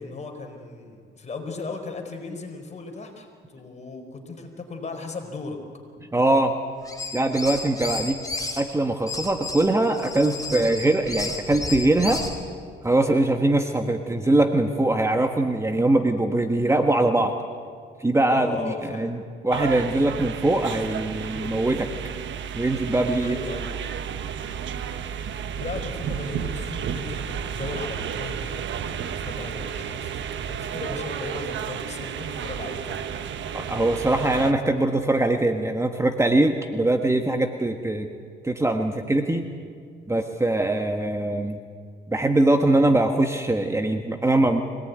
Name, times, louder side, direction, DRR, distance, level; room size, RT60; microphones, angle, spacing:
voice 1, 0.0-3.3 3.5-5.6 18.3-19.2 23.2-23.8 25.5-33.3, left 3 dB, 35° left, 3 dB, 4.6 m, -36 dB
voice 2, 6.1-6.5 7.1-8.2 8.6-12.2 12.8-17.3 18.0-19.2 19.4-21.9 22.5-23.4 33.5-38.1 38.4-39.5 40.1-41.6 42.1-44.6, right 2 dB, 15° right, 5 dB, 1.4 m, -22 dB
sound 1, 6.8-8.6 9.1-12.4, left 3 dB, 15° left, 4.3 m, -32 dB
sound 2, 19.5-34.5, right 8 dB, 70° right, 1.3 m, -32 dB
24.0 x 18.5 x 9.4 m, 2.1 s
cardioid pair, 90°, 20 cm